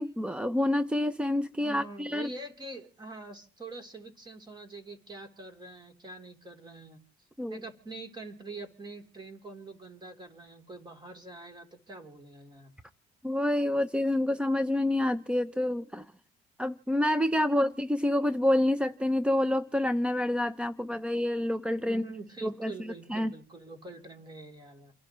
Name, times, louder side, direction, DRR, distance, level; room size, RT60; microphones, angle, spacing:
voice 1, 0.0-2.3 7.4-7.6 13.2-16.1 16.6-22.0 22.4-23.3, left 1 dB, 5° right, 13 dB, 0.6 m, -28 dB
voice 2, 1.6-7.0 7.5-12.7 21.8-24.9, right 2 dB, 25° right, 6 dB, 3.4 m, -45 dB
28.5 x 11.5 x 3.1 m, 0.36 s
cardioid pair, 110°, 17 cm